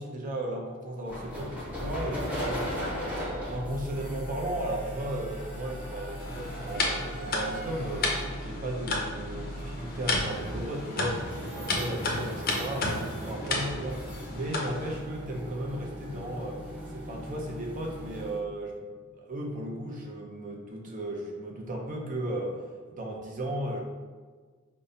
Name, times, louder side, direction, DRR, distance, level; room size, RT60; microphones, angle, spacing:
voice 1, 0.0-2.7 3.0-8.1 8.4-16.6 16.9-22.6 22.9-23.8, right 1 dB, 35° right, 0 dB, 0.4 m, -35 dB
sound 1, 1.1-18.4, equal, 5° right, 0.8 m, -38 dB
sound 2, 6.2-15.0, left 2 dB, 40° left, 0.5 m, -33 dB
5.2 x 2.1 x 2.6 m, 1.5 s
head